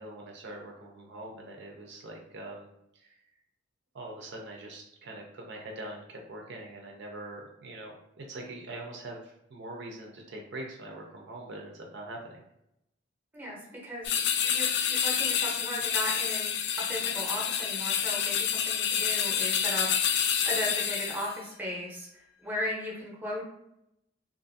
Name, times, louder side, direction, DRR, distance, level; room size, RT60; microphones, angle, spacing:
voice 1, 0.0-2.7 2.9-3.1 3.9-12.4, right 1 dB, 65° right, 1 dB, 0.5 m, -43 dB
voice 2, 13.8-19.9 20.4-23.4, equal, 10° right, -3 dB, 0.7 m, -36 dB
sound 1, 14.0-21.4, left 8 dB, 60° left, 0.3 m, -28 dB
2.5 x 2.5 x 2.6 m, 0.80 s
head